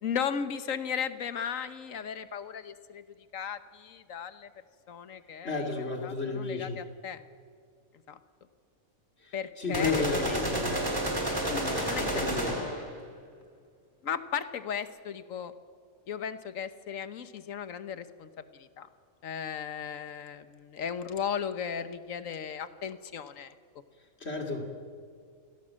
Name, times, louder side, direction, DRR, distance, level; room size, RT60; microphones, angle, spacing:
voice 1, 0.0-3.0 3.3-4.5 4.9-5.7 6.0-7.2 8.1-8.2 9.3-10.8 11.9-12.9 14.0-15.5 16.1-18.9 19.2-23.5, left 7 dB, 75° left, 12 dB, 1.4 m, -36 dB
voice 2, 5.4-6.8 9.2-10.9 11.4-12.6 24.2-24.7, left 4 dB, 50° left, 3 dB, 2.9 m, -33 dB
sound 1, 9.7-12.9, right 1 dB, 15° right, 3.6 m, -30 dB
28.5 x 16.5 x 7.6 m, 2.1 s
omnidirectional pair, 1.4 m